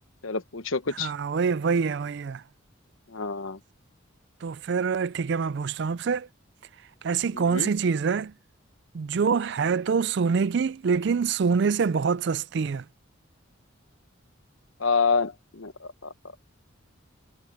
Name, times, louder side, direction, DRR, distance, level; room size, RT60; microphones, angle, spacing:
voice 1, 0.2-1.1 3.1-3.6 7.3-7.7 14.8-16.1, left 5 dB, 75° left, 1.1 m, -27 dB
voice 2, 1.0-2.4 4.4-6.3 7.0-8.3 8.9-12.8, right 5 dB, 55° right, 0.4 m, -25 dB
head